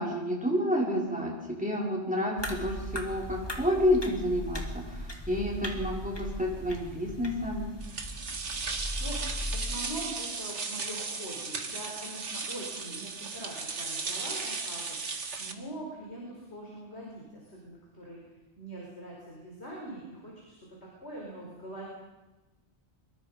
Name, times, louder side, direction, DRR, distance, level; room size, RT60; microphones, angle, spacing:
voice 1, 0.0-7.7, left 1 dB, 5° right, -4 dB, 6.0 m, -29 dB
sound 1, 2.4-9.7, equal, 20° left, 2.4 m, -38 dB
sound 2, 7.8-15.5, right 4 dB, 85° right, 1.9 m, -36 dB
voice 2, 8.6-18.2 18.6-21.9, right 1 dB, 70° left, -3 dB, 5.5 m, -43 dB
25.5 x 22.5 x 5.5 m, 1.1 s
omnidirectional pair, 1.2 m